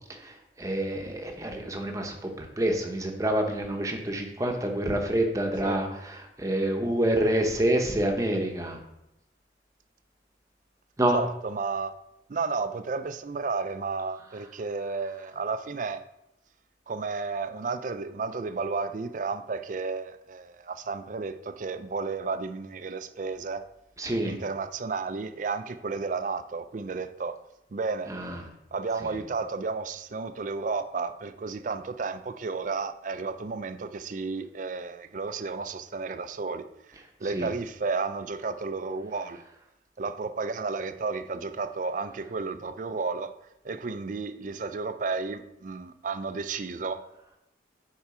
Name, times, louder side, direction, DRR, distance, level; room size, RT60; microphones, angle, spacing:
voice 1, 0.6-5.9 6.4-8.8 11.0-11.2 24.0-24.4 28.1-28.4 37.3-37.5, right 1 dB, 20° right, 0.9 m, -27 dB
voice 2, 11.1-11.9 12.3-16.0 16.9-23.6 24.2-27.4 27.7-28.1 28.7-36.7 37.2-39.4 40.0-43.3 43.6-47.1, right 4 dB, 45° right, 0.4 m, -32 dB
7.1 x 4.7 x 4.9 m
head